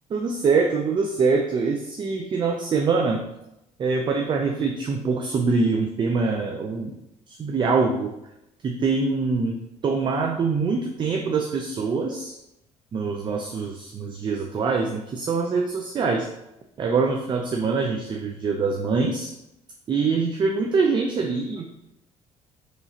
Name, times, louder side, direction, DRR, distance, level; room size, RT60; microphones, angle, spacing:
voice 1, 0.1-3.2 3.8-7.0 7.3-8.1 8.6-9.6 9.8-12.4 12.9-16.3 16.8-19.3 19.9-21.6, right 4 dB, 40° right, 2 dB, 0.5 m, -24 dB
4.7 x 3.1 x 2.8 m, 0.86 s
cardioid pair, 100°, 13 cm